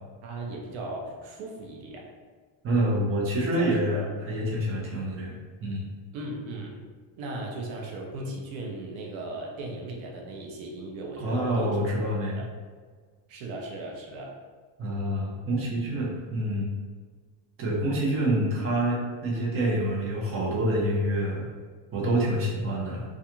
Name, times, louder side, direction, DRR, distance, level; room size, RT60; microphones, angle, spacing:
voice 1, 0.2-2.1 3.6-4.1 6.1-6.8 7.2-11.8 12.4-12.5 13.3-14.3, right 2 dB, 75° right, 0 dB, 0.7 m, -37 dB
voice 2, 2.6-5.9 11.2-12.4 14.8-16.7 17.6-21.5 21.9-23.0, right 1 dB, 25° right, -4 dB, 0.7 m, -27 dB
2.3 x 2.3 x 2.9 m, 1.5 s
cardioid pair, 130°, 49 cm